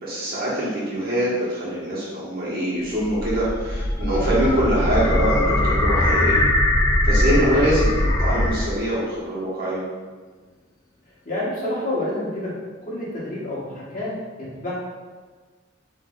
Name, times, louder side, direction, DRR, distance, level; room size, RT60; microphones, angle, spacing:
voice 1, 0.0-6.5 7.0-9.8, equal, 50° right, -7 dB, 1.4 m, -23 dB
sound 1, 2.8-8.9, left 1 dB, 20° left, 0.3 m, -21 dB
voice 2, 11.2-12.5 12.8-14.1 14.4-14.7, left 1 dB, 45° left, -7 dB, 1.4 m, -28 dB
5.6 x 3.4 x 2.5 m, 1.4 s
head